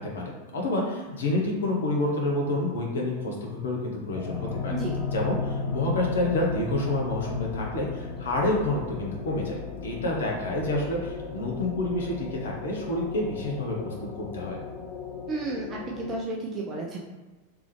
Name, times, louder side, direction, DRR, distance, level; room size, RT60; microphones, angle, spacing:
voice 1, 0.0-4.7 5.1-9.6 9.8-14.6, left 2 dB, 65° left, -1 dB, 0.9 m, -28 dB
sound 1, 4.2-16.1, left 4 dB, 35° left, 0.5 m, -35 dB
voice 2, 4.7-5.0 15.3-17.0, right 2 dB, 25° right, -3 dB, 0.5 m, -32 dB
3.6 x 3.0 x 3.2 m, 1.2 s
figure-of-eight pair, 90°, 0 cm